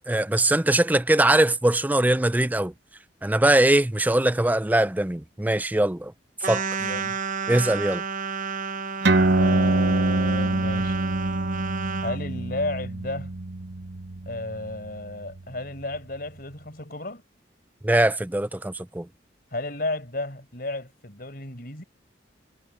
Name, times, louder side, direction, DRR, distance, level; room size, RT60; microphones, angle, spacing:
voice 1, 0.1-2.7 3.2-6.1 6.4-6.6 7.5-8.0 17.8-19.1, right 1 dB, 10° right, 0.5 m, -21 dB
sound 1, 6.4-12.2, right 5 dB, 45° right, 0.9 m, -31 dB
voice 2, 6.8-7.2 9.3-11.0 12.0-13.3 14.2-17.2 19.5-21.8, left 2 dB, 50° left, 5.1 m, -33 dB
sound 2, 9.0-16.0, right 2 dB, 70° right, 1.0 m, -25 dB
head